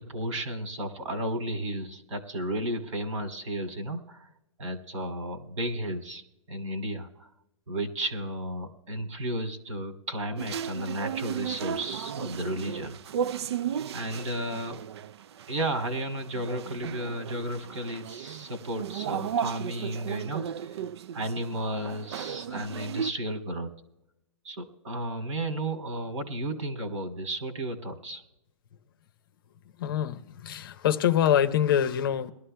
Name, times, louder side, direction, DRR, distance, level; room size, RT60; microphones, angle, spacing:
voice 1, 0.0-4.3 4.6-7.3 7.7-13.0 13.9-14.8 15.5-20.8 21.1-23.7 24.4-28.2, right 1 dB, 75° right, 2.8 m, -33 dB
sound 1, 10.4-23.1, right 8 dB, 55° right, 0.4 m, -35 dB
voice 2, 29.8-32.3, left 10 dB, 45° left, 0.7 m, -25 dB
22.0 x 12.5 x 2.2 m
hypercardioid pair, 165°, 16 cm